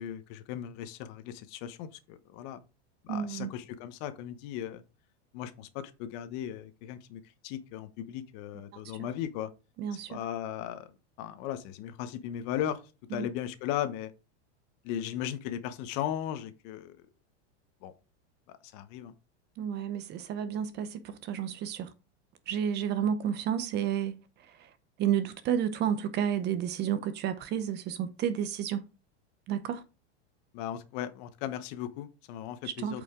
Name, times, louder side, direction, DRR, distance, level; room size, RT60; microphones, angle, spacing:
voice 1, 0.0-2.6 3.0-4.8 5.3-9.5 10.1-10.9 11.2-12.8 13.1-14.1 14.8-17.1 17.8-17.9 18.5-19.1 30.5-33.0, left 11 dB, 45° left, 1.0 m, -37 dB
voice 2, 3.1-3.5 9.0-9.1 9.8-10.2 13.1-13.3 19.6-21.9 22.5-24.7 25.0-28.9 29.5-29.8 32.6-33.0, right 9 dB, 30° right, 0.8 m, -31 dB
8.3 x 5.2 x 3.7 m
supercardioid pair, 145°, 35 cm